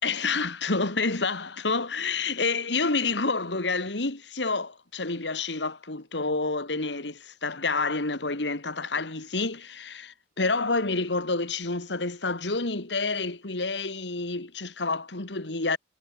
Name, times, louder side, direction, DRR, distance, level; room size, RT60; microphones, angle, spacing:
voice 1, 0.0-15.8, left 3 dB, 80° left, 2.5 m, -28 dB
head